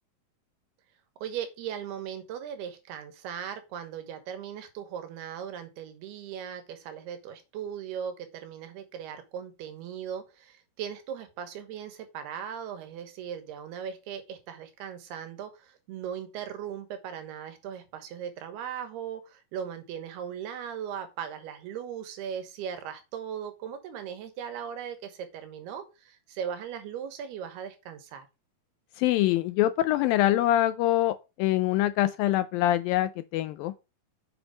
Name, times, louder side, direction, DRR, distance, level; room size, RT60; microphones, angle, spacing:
voice 1, 1.2-28.3, right 8 dB, 85° right, 3.4 m, -38 dB
voice 2, 29.0-33.7, left 14 dB, 80° left, 2.1 m, -24 dB
8.0 x 6.0 x 5.1 m
omnidirectional pair, 4.5 m